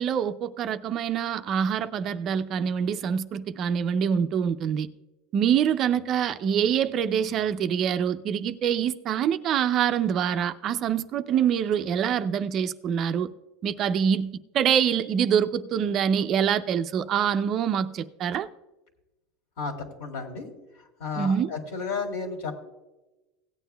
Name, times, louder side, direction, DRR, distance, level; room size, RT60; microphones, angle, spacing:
voice 1, 0.0-4.9 5.3-13.3 13.6-14.3 14.5-18.5 21.1-21.5, right 8 dB, 35° right, 0.4 m, -25 dB
voice 2, 19.6-20.5 21.0-22.5, left 4 dB, 70° left, 2.5 m, -32 dB
17.0 x 9.3 x 2.3 m
supercardioid pair, 155°, 0 cm